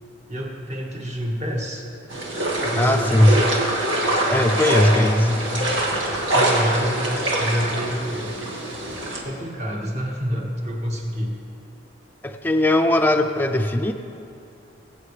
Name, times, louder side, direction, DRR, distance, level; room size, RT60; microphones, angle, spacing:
voice 1, 0.3-1.8 2.6-3.4 4.8-5.5 6.3-8.3 9.2-11.4, equal, 35° right, -2 dB, 1.8 m, -27 dB
sound 1, 2.1-9.2, right 1 dB, 65° right, 2.1 m, -24 dB
voice 2, 2.8-3.5 4.3-5.3 12.2-13.9, left 1 dB, 10° left, 4 dB, 0.5 m, -19 dB
21.5 x 8.6 x 3.3 m, 2.7 s
head